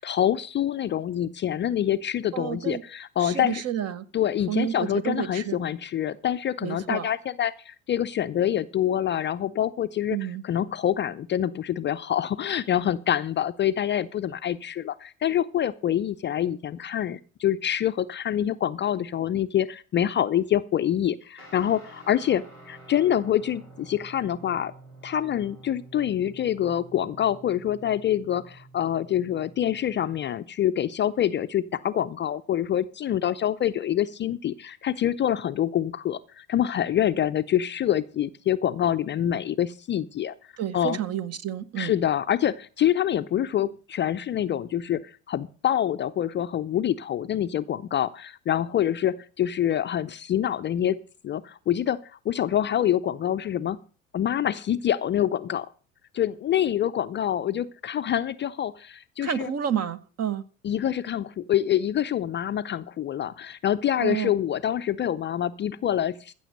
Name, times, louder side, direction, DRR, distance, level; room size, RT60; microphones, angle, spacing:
voice 1, 0.0-3.6 4.1-10.2 10.4-24.7 25.0-40.3 40.7-41.0 41.8-51.0 51.2-53.8 54.1-55.7 56.1-59.5 60.6-66.3, left 10 dB, 30° left, 12 dB, 0.5 m, -26 dB
voice 2, 2.3-2.8 3.2-4.1 4.5-5.6 6.6-7.1 10.1-10.4 40.6-42.0 59.2-60.4 64.0-64.3, right 9 dB, 40° right, 16 dB, 1.1 m, -30 dB
Guitar, 21.4-30.3, right 2 dB, 90° right, 5.6 m, -49 dB
15.0 x 6.9 x 6.5 m, 0.38 s
hypercardioid pair, 75°, 40 cm